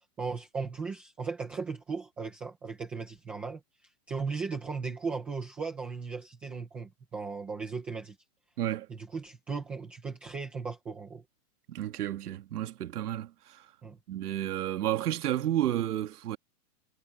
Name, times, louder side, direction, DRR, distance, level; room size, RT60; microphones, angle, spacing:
voice 1, 0.2-3.6 4.1-8.1 8.9-11.2 13.8-14.0, right 4 dB, 5° right, 0.4 m, -37 dB
voice 2, 11.7-13.6 14.1-16.4, right 12 dB, 80° right, 1.8 m, -31 dB
supercardioid pair, 160°, 45 cm